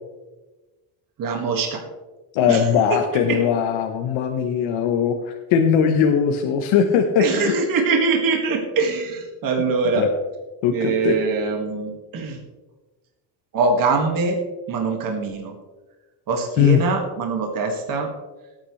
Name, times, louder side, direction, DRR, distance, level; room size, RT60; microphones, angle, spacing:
voice 1, 1.2-1.8 2.5-2.7 3.1-3.4 7.2-10.0 10.7-12.4 13.5-14.4 14.7-15.6 16.3-18.1, right 4 dB, 45° right, 2 dB, 2.0 m, -23 dB
voice 2, 2.3-7.5 10.0-10.1 10.6-11.2 16.6-16.8, left 7 dB, 80° left, 4 dB, 1.2 m, -20 dB
17.5 x 9.2 x 3.2 m, 1.2 s
cardioid pair, 160°, 47 cm